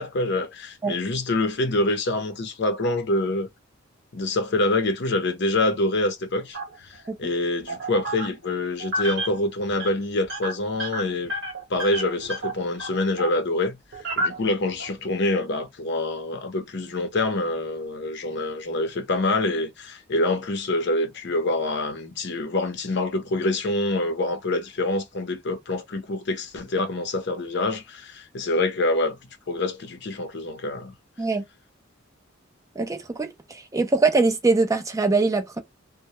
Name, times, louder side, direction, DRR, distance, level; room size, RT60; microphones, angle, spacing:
voice 1, 0.0-3.5 4.1-11.3 11.7-13.8 14.2-29.2 29.5-30.9, left 2 dB, 60° left, 0.7 m, -26 dB
sound 1, 6.5-7.1 7.7-8.5 8.8-9.4 9.7-9.9 10.2-13.4 13.9-14.9, right 1 dB, 65° right, 1.0 m, -31 dB
voice 2, 32.8-35.6, right 3 dB, 15° right, 0.4 m, -22 dB
2.1 x 2.0 x 2.8 m
head